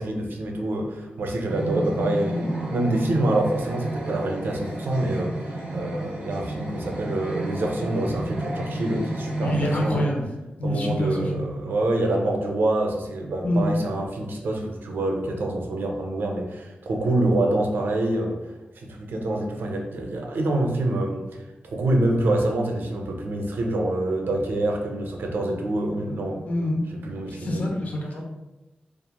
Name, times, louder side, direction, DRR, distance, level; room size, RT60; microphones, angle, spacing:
voice 1, 0.0-10.0 10.6-18.4 18.8-21.2 21.7-26.4 26.9-27.6, right 1 dB, 80° right, 1 dB, 0.5 m, -26 dB
sound 1, 1.5-9.9, right 1 dB, 40° right, 0.8 m, -31 dB
voice 2, 9.4-10.3 10.6-11.4 13.4-13.7 26.5-26.8 27.3-28.2, left 1 dB, 45° left, 0 dB, 0.5 m, -26 dB
2.9 x 2.3 x 2.2 m, 1.0 s
wide cardioid pair, 125°, 3 cm